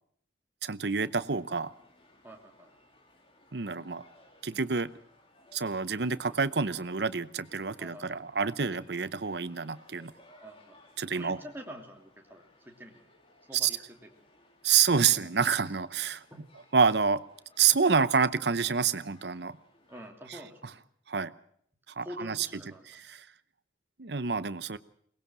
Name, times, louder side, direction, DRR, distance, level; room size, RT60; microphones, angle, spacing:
voice 1, 0.6-1.7 3.5-4.0 4.4-4.9 5.5-10.1 11.0-11.4 13.5-13.7 14.6-16.2 16.7-17.2 17.6-19.6 20.3-20.4 21.1-21.3 22.0-22.5 22.9-23.3 24.0-24.8, right 6 dB, 70° right, 15 dB, 0.8 m, -28 dB
sound 1, 0.8-20.1, left 1 dB, 30° left, 3.0 m, -61 dB
voice 2, 2.2-2.7 7.8-8.2 10.4-10.8 11.1-13.0 13.5-14.1 14.9-15.3 16.3-16.5 19.9-20.8 22.0-22.8, equal, 10° right, 1 dB, 2.8 m, -46 dB
22.5 x 19.5 x 6.2 m, 0.65 s
head